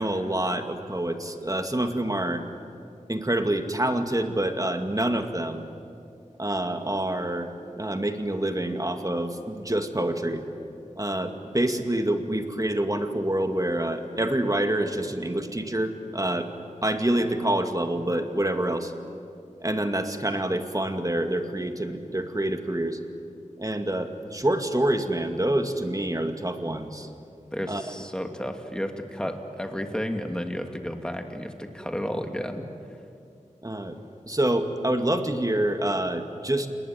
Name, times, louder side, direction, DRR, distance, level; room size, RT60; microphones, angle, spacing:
voice 1, 0.0-2.4 3.1-5.7 6.4-7.5 7.8-10.4 11.0-16.5 16.8-18.9 19.6-23.0 23.6-27.1 27.7-27.8 33.6-34.0 34.3-36.7, right 1 dB, 25° right, 6 dB, 2.2 m, -27 dB
voice 2, 27.5-32.6, equal, 5° left, 4 dB, 2.6 m, -32 dB
29.0 x 20.0 x 9.4 m, 2.5 s
wide cardioid pair, 45°, 13 cm